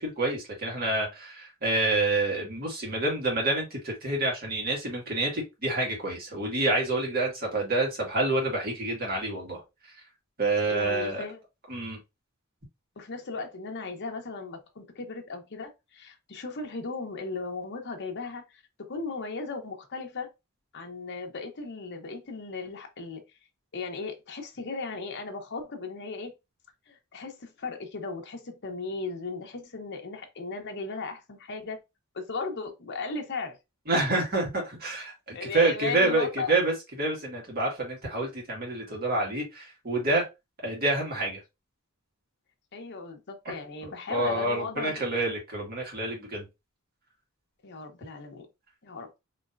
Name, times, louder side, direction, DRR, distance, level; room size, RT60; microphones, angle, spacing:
voice 1, 0.0-9.6 10.4-11.2 11.7-12.0 33.9-40.3 40.6-41.4 43.5-43.6 43.8-46.5, right 2 dB, 45° right, 1.9 m, -28 dB
voice 2, 10.7-11.4 13.0-20.3 20.7-23.2 23.7-26.3 26.9-31.8 32.1-33.6 35.3-36.6 42.7-45.0 47.6-48.5 48.8-49.1, left 3 dB, 55° left, 0.9 m, -36 dB
4.2 x 3.2 x 2.5 m
head